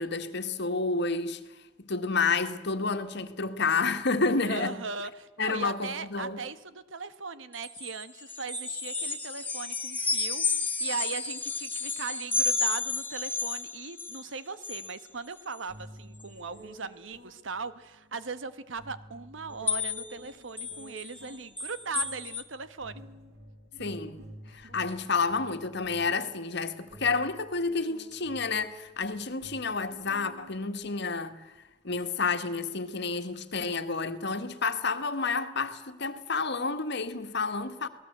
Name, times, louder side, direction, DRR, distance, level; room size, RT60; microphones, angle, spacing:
voice 1, 0.0-1.4 1.8-4.8 5.4-6.4 23.7-24.2 24.5-31.5 31.8-37.9, left 4 dB, 65° left, 1.7 m, -30 dB
voice 2, 4.4-23.0 24.5-24.6, right 4 dB, 75° right, 1.3 m, -39 dB
sound 1, 7.5-14.3 14.6-15.0 15.4-15.6 16.2-16.3 19.7-20.2 20.6-22.4, left 4 dB, 10° left, 2.4 m, -32 dB
sound 2, 15.1-15.2 15.7-31.6, equal, 60° right, 6.0 m, -51 dB
27.0 x 18.5 x 8.0 m
head